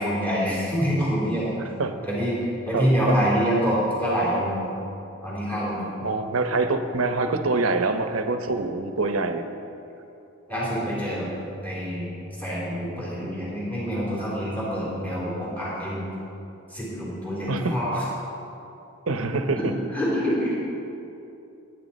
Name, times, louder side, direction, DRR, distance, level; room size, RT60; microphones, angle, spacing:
voice 1, 0.0-1.6 2.0-4.7 5.2-5.9 10.5-11.3 11.6-12.1 12.4-16.0 16.7-18.0 19.6-20.5, equal, 10° left, -8 dB, 3.6 m, -26 dB
voice 2, 2.7-3.2 6.0-9.5 17.5-17.8 19.1-19.7, right 3 dB, 85° right, 7 dB, 0.9 m, -25 dB
19.5 x 10.0 x 4.2 m, 2.8 s
head